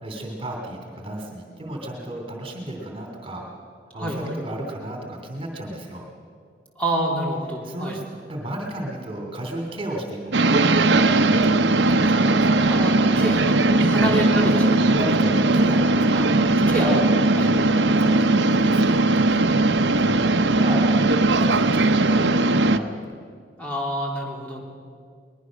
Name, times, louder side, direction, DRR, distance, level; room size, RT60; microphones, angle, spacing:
voice 1, 0.0-3.4 3.9-6.0 7.6-10.5 11.1-12.7 13.9-14.1 14.4-17.0 17.4-23.1, right 1 dB, 30° right, 1 dB, 2.9 m, -33 dB
voice 2, 3.9-4.3 6.8-8.0 12.7-14.7 16.1-16.2 16.7-16.9 17.4-17.5 23.6-24.6, right 1 dB, 10° left, -2 dB, 3.4 m, -27 dB
sound 1, 10.3-22.8, right 2 dB, 80° right, 0.9 m, -19 dB
22.0 x 20.5 x 6.4 m, 2.1 s
head